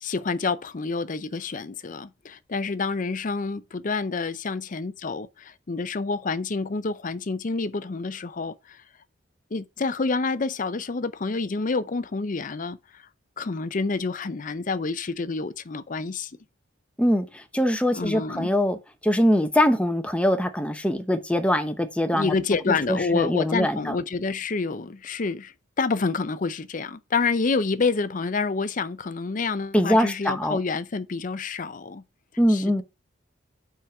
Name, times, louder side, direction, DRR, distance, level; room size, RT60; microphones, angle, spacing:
voice 1, 0.0-8.8 9.5-13.0 13.4-16.3 17.9-18.5 22.1-32.0 32.5-32.8, left 4 dB, 45° left, 0.6 m, -28 dB
voice 2, 17.0-18.8 19.0-22.3 22.7-23.9 29.7-30.6 32.4-32.8, equal, 5° left, 0.8 m, -23 dB
5.5 x 5.0 x 5.9 m
head